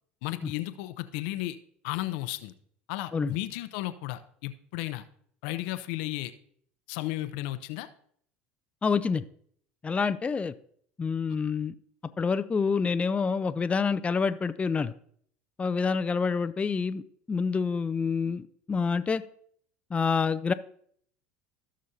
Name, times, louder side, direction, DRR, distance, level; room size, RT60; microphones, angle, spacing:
voice 1, 0.2-1.6 1.8-2.5 2.9-5.0 5.4-6.3 6.9-7.9 11.3-11.4, left 16 dB, 70° left, 12 dB, 0.7 m, -34 dB
voice 2, 8.8-9.2 9.8-10.5 11.0-11.7 12.2-14.9 15.6-17.0 17.3-19.2 19.9-20.5, left 5 dB, 20° left, 12 dB, 0.5 m, -27 dB
16.5 x 6.3 x 2.8 m, 0.63 s
hypercardioid pair, 80°, 6 cm